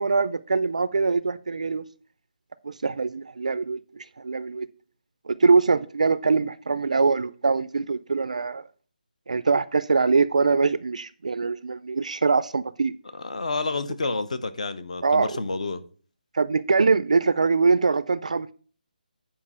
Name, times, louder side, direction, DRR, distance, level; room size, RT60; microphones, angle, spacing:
voice 1, 0.0-1.8 2.6-4.7 5.3-8.6 9.3-12.9 15.0-15.4 16.3-18.5, right 4 dB, 45° right, 0.3 m, -23 dB
voice 2, 13.1-15.8, left 3 dB, 45° left, 0.8 m, -29 dB
8.6 x 5.0 x 5.5 m
hypercardioid pair, 180°, 5 cm